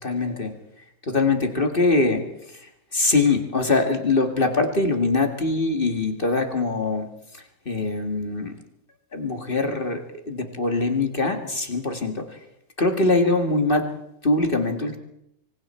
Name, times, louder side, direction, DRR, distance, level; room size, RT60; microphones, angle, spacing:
voice 1, 0.0-0.5 1.1-2.2 2.5-7.1 7.3-8.5 9.1-12.4 12.8-13.9 14.2-15.0, left 3 dB, 35° left, 5 dB, 2.1 m, -23 dB
25.5 x 25.0 x 4.4 m, 0.79 s
omnidirectional pair, 1.6 m